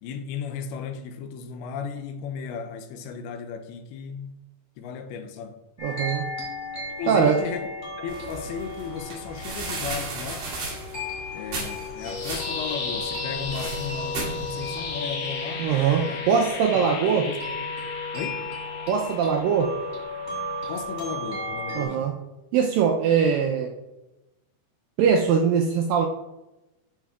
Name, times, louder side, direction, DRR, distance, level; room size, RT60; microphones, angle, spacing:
voice 1, 0.0-4.4 4.8-5.6 7.0-7.7 8.0-10.5 11.3-15.7 16.0-16.2 16.5-17.7 18.1-18.5 20.7-22.1 23.1-23.2, left 6 dB, 85° left, 2.5 m, -35 dB
sound 1, 5.8-21.9, left 2 dB, 15° left, 1.6 m, -35 dB
voice 2, 5.8-6.3 7.1-7.4 15.6-17.2 18.9-19.7 21.8-22.2 22.5-23.7 25.0-26.1, right 7 dB, 85° right, 2.0 m, -22 dB
sound 2, 8.1-14.9, right 3 dB, 65° right, 3.7 m, -36 dB
sound 3, 11.7-21.8, left 4 dB, 65° left, 2.1 m, -37 dB
11.5 x 4.8 x 2.3 m
omnidirectional pair, 4.5 m